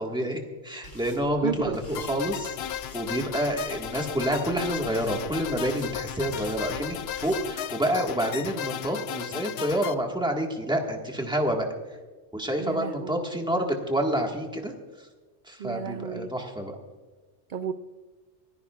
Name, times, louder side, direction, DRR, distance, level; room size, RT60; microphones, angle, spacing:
voice 1, 0.0-7.0 7.2-11.7 12.3-14.7 15.0-15.1 15.4-16.8, right 1 dB, 5° right, 1 dB, 1.5 m, -28 dB
sound 1, 0.8-7.4, equal, 80° left, 3.4 m, -47 dB
voice 2, 1.4-1.8 12.6-13.6 15.6-16.3 17.5-17.7, right 7 dB, 55° right, 10 dB, 0.5 m, -33 dB
sound 2, 1.9-9.9, left 10 dB, 65° left, 0.7 m, -35 dB
27.0 x 10.5 x 2.4 m, 1.3 s
omnidirectional pair, 1.3 m